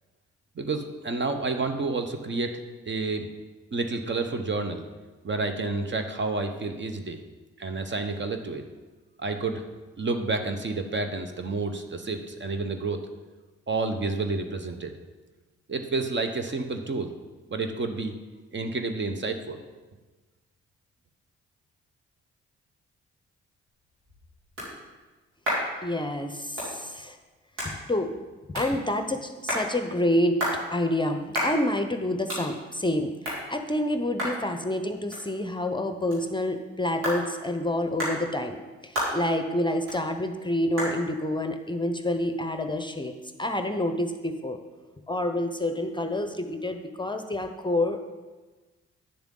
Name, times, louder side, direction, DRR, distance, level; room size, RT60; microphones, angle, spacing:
voice 1, 0.6-2.6 2.9-3.3 3.7-4.8 5.2-7.2 7.6-8.6 9.2-9.6 10.0-13.0 13.7-14.9 15.7-17.1 17.5-18.1 18.5-19.6, right 3 dB, 35° right, 6 dB, 1.0 m, -29 dB
sound 1, 23.7-43.0, equal, 85° right, 2.9 m, -36 dB
voice 2, 25.8-27.2 27.6-28.1 28.5-30.4 30.7-33.1 33.5-38.6 38.8-43.1 43.4-44.6 45.1-48.1, left 1 dB, 15° left, 7 dB, 0.8 m, -28 dB
9.6 x 7.0 x 3.8 m, 1.2 s
hypercardioid pair, 45°, 31 cm